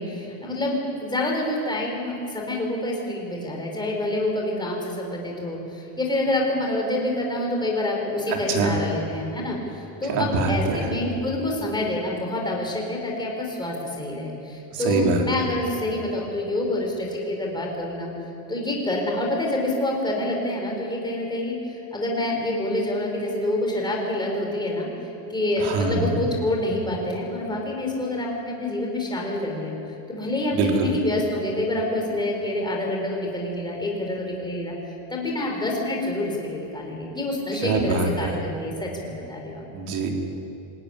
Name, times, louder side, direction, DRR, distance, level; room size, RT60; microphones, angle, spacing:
voice 1, 0.0-18.1 18.5-24.9 25.3-29.8 30.1-34.7 35.1-39.6, left 1 dB, 10° left, -1 dB, 4.5 m, -27 dB
voice 2, 10.1-10.9 14.7-15.2 25.6-26.2 30.5-30.9 37.6-38.3 39.7-40.1, right 4 dB, 55° right, 1 dB, 3.8 m, -24 dB
26.0 x 13.5 x 10.0 m, 3.0 s
cardioid pair, 160°, 46 cm